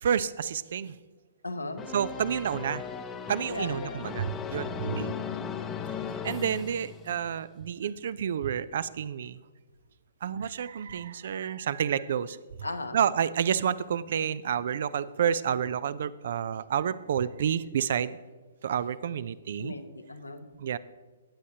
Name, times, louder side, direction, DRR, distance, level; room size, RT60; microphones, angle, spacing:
voice 1, 0.0-0.9 1.9-2.8 3.3-5.1 6.2-9.4 10.2-12.4 12.9-18.2 18.6-19.7 20.6-20.8, right 8 dB, 50° right, 17 dB, 0.4 m, -29 dB
voice 2, 1.4-1.8 3.5-4.0 4.8-5.2 12.6-13.0 19.6-20.5, left 2 dB, 80° left, 7 dB, 1.1 m, -37 dB
sound 1, 1.8-7.4, left 7 dB, 15° left, 0.6 m, -37 dB
17.5 x 8.4 x 2.8 m, 1.4 s
figure-of-eight pair, 120°, 0 cm